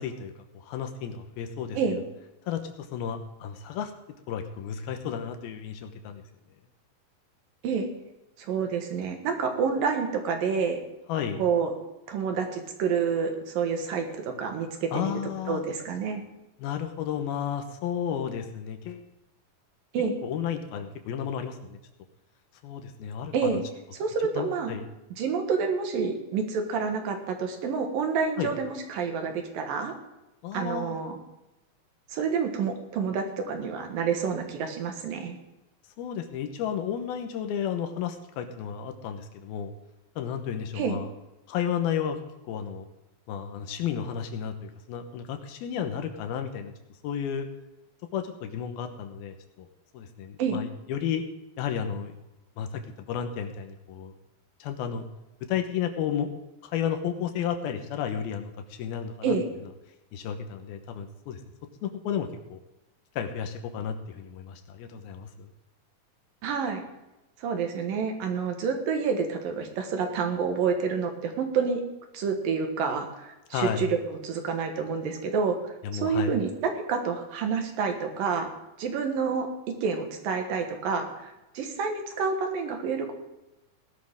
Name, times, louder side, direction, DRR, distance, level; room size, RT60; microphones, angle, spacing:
voice 1, 0.0-2.0 2.5-3.9 4.3-6.2 11.1-11.4 14.9-15.6 16.6-19.0 20.2-21.8 22.6-23.6 24.4-24.8 28.4-28.5 30.4-31.0 36.0-39.7 40.2-41.1 41.5-42.2 42.5-42.9 43.3-46.7 47.0-47.5 48.1-49.7 49.9-51.2 51.6-52.2 52.6-52.8 53.1-54.1 54.6-55.1 55.5-56.3 56.6-59.4 60.1-61.4 61.8-62.6 63.2-65.5 73.5-73.9 75.8-76.3, left 8 dB, 85° left, 7 dB, 2.9 m, -32 dB
voice 2, 8.4-10.8 11.4-11.7 12.1-15.1 15.5-16.2 19.9-20.2 23.3-23.6 24.0-24.7 25.2-30.0 30.5-31.2 32.1-35.4 40.7-41.0 50.4-50.6 59.2-59.5 66.4-66.8 67.4-71.8 72.1-74.0 74.2-78.5 78.8-83.1, right 5 dB, 70° right, 4 dB, 3.1 m, -28 dB
18.0 x 11.5 x 3.7 m, 0.97 s
omnidirectional pair, 4.3 m